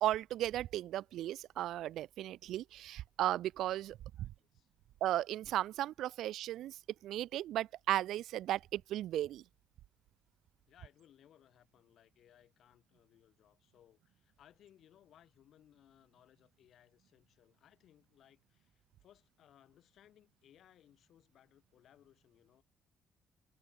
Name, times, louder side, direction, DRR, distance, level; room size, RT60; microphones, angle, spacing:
voice 1, 0.0-4.3 5.0-9.4, right 13 dB, 75° right, 0.7 m, -36 dB
voice 2, 4.2-4.7 10.7-22.6, left 11 dB, 60° left, 7.8 m, -65 dB
cardioid pair, 150°, 0 cm